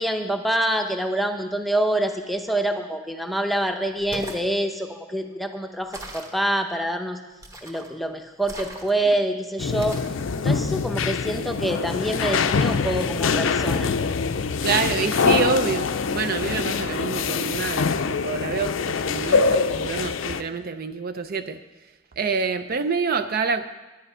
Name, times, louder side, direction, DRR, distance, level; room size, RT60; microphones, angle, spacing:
voice 1, 0.0-7.2 7.6-10.0 10.4-13.9, right 1 dB, ahead, 5 dB, 0.7 m, -26 dB
sound 1, 3.9-4.5 5.9-6.4 7.4-7.9 8.4-9.1 9.8-10.2, equal, 15° right, 1.2 m, -38 dB
sound 2, 9.6-20.4, left 5 dB, 85° left, 0.5 m, -24 dB
voice 2, 14.6-21.6 22.2-23.6, right 5 dB, 50° right, 10 dB, 0.5 m, -27 dB
10.5 x 10.5 x 5.5 m, 1.1 s
head